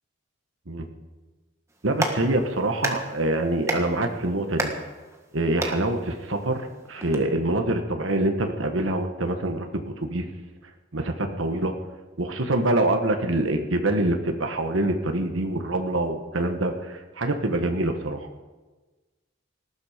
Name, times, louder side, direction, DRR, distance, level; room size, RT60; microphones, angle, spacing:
Clapping, 1.7-7.2, right 2 dB, 15° right, 1.6 m, -34 dB
voice 1, 1.8-4.7 5.3-10.2 10.9-11.7 12.2-18.3, right 1 dB, 75° right, 5 dB, 1.4 m, -25 dB
19.0 x 13.5 x 5.1 m, 1.3 s
head